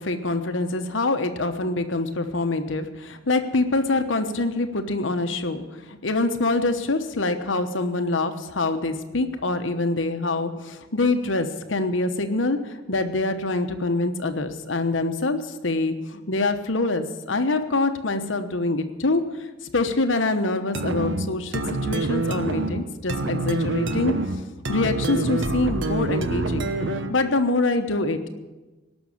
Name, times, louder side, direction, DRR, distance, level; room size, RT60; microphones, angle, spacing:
voice 1, 0.0-19.5 19.7-24.1 24.7-26.7 27.1-28.3, left 2 dB, 70° left, 8 dB, 1.1 m, -25 dB
sound 1, 20.7-27.2, right 2 dB, 65° right, 1.0 m, -27 dB
18.0 x 6.3 x 8.5 m, 1.2 s
head